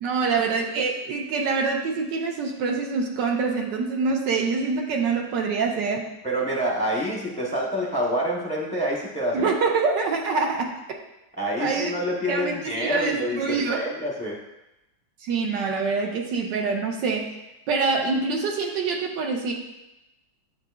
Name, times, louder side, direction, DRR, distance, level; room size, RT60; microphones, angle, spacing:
voice 1, 0.0-6.1 9.3-10.7 11.6-11.9 12.3-13.8 15.2-17.3 17.7-19.5, right 4 dB, 85° right, 1 dB, 1.5 m, -25 dB
voice 2, 6.2-9.5 11.4-14.4, equal, 5° left, -4 dB, 0.5 m, -27 dB
8.9 x 6.8 x 2.4 m, 0.93 s
omnidirectional pair, 1.9 m